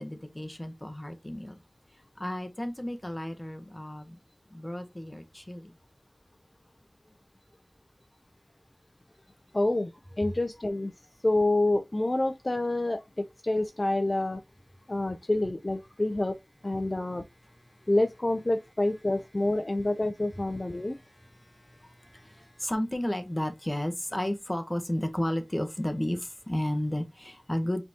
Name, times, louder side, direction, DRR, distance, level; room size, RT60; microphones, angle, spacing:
voice 1, 0.0-1.6 2.2-4.2 4.5-5.7 21.4-27.8, left 1 dB, 20° left, 1.0 m, -33 dB
voice 2, 9.5-9.9 10.2-10.9 11.2-14.4 14.9-16.4 16.6-17.2 17.9-21.0, left 2 dB, 40° left, 0.4 m, -27 dB
4.9 x 3.5 x 2.8 m
wide cardioid pair, 60°, 0 cm